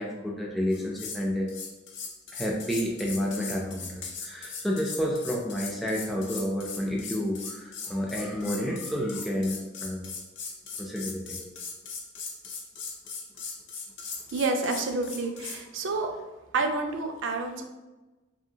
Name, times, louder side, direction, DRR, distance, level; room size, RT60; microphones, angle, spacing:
voice 1, 0.0-1.5 2.3-10.1 10.8-11.4, equal, ahead, -2 dB, 0.3 m, -30 dB
sound 1, 0.7-1.2 1.5-15.6, left 5 dB, 65° left, 0.6 m, -39 dB
voice 2, 14.3-16.1 16.5-17.6, right 3 dB, 75° right, 5 dB, 0.4 m, -29 dB
2.8 x 2.7 x 2.6 m, 1.1 s
head